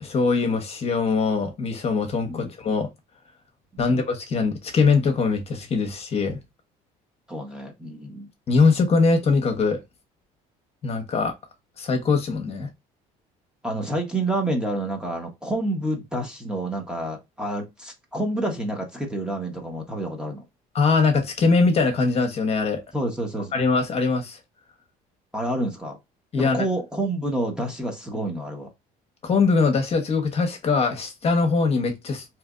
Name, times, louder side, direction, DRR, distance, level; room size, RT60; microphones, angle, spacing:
voice 1, 0.0-2.9 3.8-6.4 8.5-9.8 10.8-11.3 11.8-12.7 20.7-22.8 23.5-24.4 26.3-26.6 29.2-32.2, left 4 dB, 40° left, 1.0 m, -22 dB
voice 2, 7.3-8.3 13.6-20.5 22.9-23.5 25.3-26.0 26.4-28.7, right 1 dB, 5° right, 1.0 m, -28 dB
3.3 x 2.9 x 2.4 m
cardioid pair, 105°, 16 cm